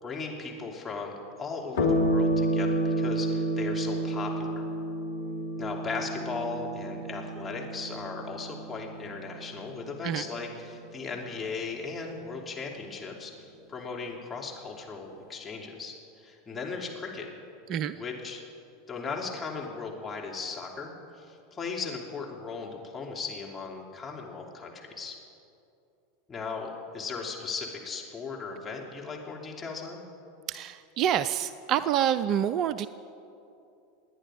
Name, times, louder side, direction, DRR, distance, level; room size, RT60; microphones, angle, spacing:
voice 1, 0.0-4.7 5.6-17.3 17.9-18.4 18.9-25.1 26.3-30.0, left 4 dB, 20° left, -1 dB, 3.0 m, -37 dB
sound 1, 1.8-10.6, right 1 dB, 70° left, 2.3 m, -30 dB
voice 2, 30.5-32.9, right 10 dB, 40° right, 14 dB, 0.4 m, -27 dB
28.0 x 10.0 x 5.1 m, 2.7 s
figure-of-eight pair, 85°, 0 cm